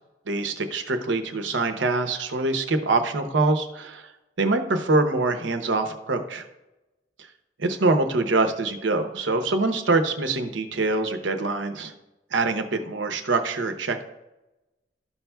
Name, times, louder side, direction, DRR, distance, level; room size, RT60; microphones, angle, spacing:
voice 1, 0.3-4.1 4.4-6.4 7.6-11.9 12.3-14.0, right 3 dB, 90° right, 7 dB, 0.8 m, -24 dB
13.0 x 5.7 x 2.3 m, 1.0 s
head